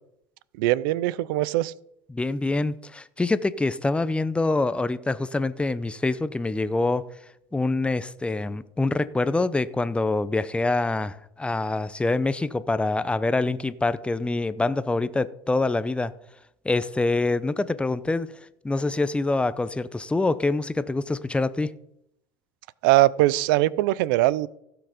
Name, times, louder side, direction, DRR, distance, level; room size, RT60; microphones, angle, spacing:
voice 1, 0.6-1.7 22.8-24.5, right 17 dB, 85° right, 0.5 m, -21 dB
voice 2, 2.1-7.1 7.5-16.1 16.6-18.3 18.6-21.7, left 2 dB, 10° left, 0.6 m, -25 dB
16.0 x 6.0 x 5.1 m
supercardioid pair, 105°, 11 cm